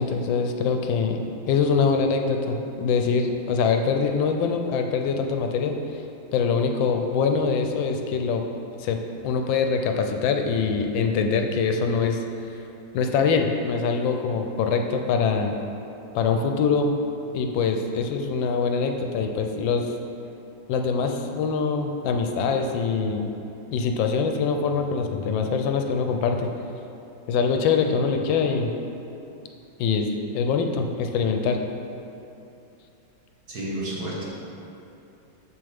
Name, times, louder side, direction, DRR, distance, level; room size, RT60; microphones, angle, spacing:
voice 1, 0.0-6.0 6.3-8.4 8.8-12.2 12.9-15.6 16.1-16.9 17.3-19.9 20.7-23.3 23.7-26.5 27.3-28.7 29.8-31.6, left 5 dB, 80° left, 4 dB, 1.3 m, -24 dB
voice 2, 33.5-34.3, right 1 dB, 55° right, -6 dB, 1.9 m, -31 dB
7.0 x 6.8 x 3.5 m, 2.7 s
omnidirectional pair, 2.1 m